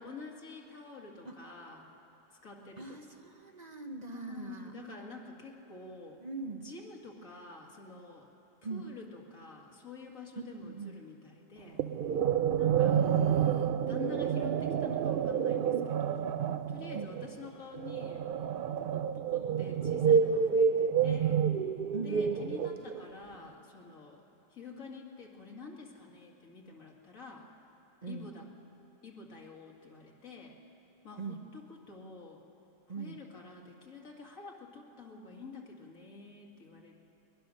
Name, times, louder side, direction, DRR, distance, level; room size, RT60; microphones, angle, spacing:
voice 1, 0.0-1.9 2.4-3.1 4.1-6.2 6.6-8.3 8.7-11.8 12.6-13.0 13.9-16.4 16.7-18.3 18.8-21.5 22.0-24.2 24.5-27.5 28.1-28.5 29.0-30.6 31.0-32.4 33.0-37.0, left 4 dB, 80° left, 0 dB, 2.5 m, -48 dB
voice 2, 2.8-4.7 6.2-6.7 8.6-8.9 10.6-11.0 12.9-13.7 16.9-17.2 21.9-22.6 28.0-28.3 31.2-31.4 32.9-33.2, right 4 dB, 35° right, 4 dB, 0.9 m, -41 dB
sound 1, 11.8-23.1, right 7 dB, 55° right, 0.6 m, -29 dB
22.0 x 20.0 x 6.4 m, 2.9 s
omnidirectional pair, 1.4 m